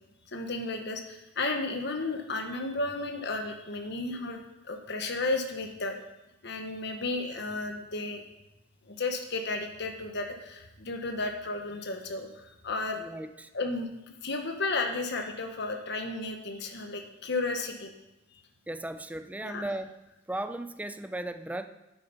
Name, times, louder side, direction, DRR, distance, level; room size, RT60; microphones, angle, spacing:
voice 1, 0.3-4.4 4.7-6.0 6.4-8.2 8.9-13.0 13.5-17.9 19.4-19.7, left 3 dB, 60° left, 4 dB, 1.4 m, -33 dB
voice 2, 13.0-13.5 18.7-20.0 20.3-21.7, right 1 dB, 10° right, 10 dB, 0.5 m, -36 dB
9.5 x 9.2 x 5.6 m, 0.96 s
head